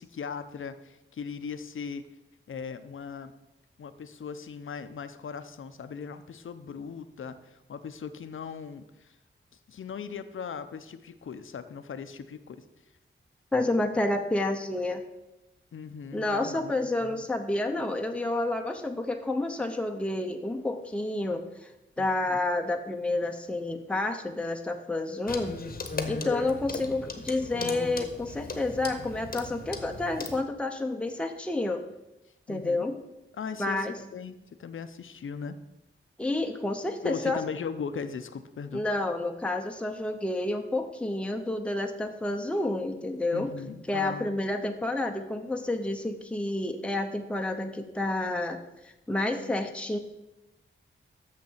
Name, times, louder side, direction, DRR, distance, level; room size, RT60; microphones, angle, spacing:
voice 1, 0.0-2.1 2.5-3.3 3.8-9.2 9.7-12.6 15.7-17.3 22.0-22.4 25.9-26.3 32.5-32.8 33.3-35.6 37.0-38.8 43.3-44.3, left 6 dB, 75° left, 11 dB, 0.7 m, -39 dB
voice 2, 13.5-15.0 16.1-21.7 22.0-25.6 26.1-31.8 32.5-33.0 33.6-33.9 36.2-37.4 38.7-43.5 43.9-48.6 48.8-50.0, left 2 dB, 5° left, 4 dB, 0.7 m, -29 dB
Clock, 25.3-30.4, left 3 dB, 45° left, 1.0 m, -37 dB
6.7 x 6.5 x 7.1 m, 0.94 s
wide cardioid pair, 150°, 21 cm